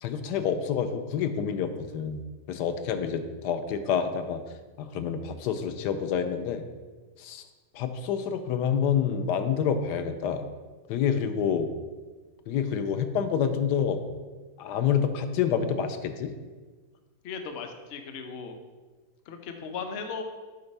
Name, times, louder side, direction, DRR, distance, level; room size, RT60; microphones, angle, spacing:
voice 1, 0.0-2.2 2.5-4.4 4.8-6.6 7.2-7.4 7.7-10.4 10.9-11.7 12.5-14.0 14.6-16.3, left 7 dB, 80° left, 8 dB, 1.2 m, -28 dB
voice 2, 17.2-18.6 19.3-20.2, left 5 dB, 55° left, 5 dB, 0.7 m, -37 dB
8.0 x 3.9 x 5.3 m, 1.3 s
omnidirectional pair, 1.8 m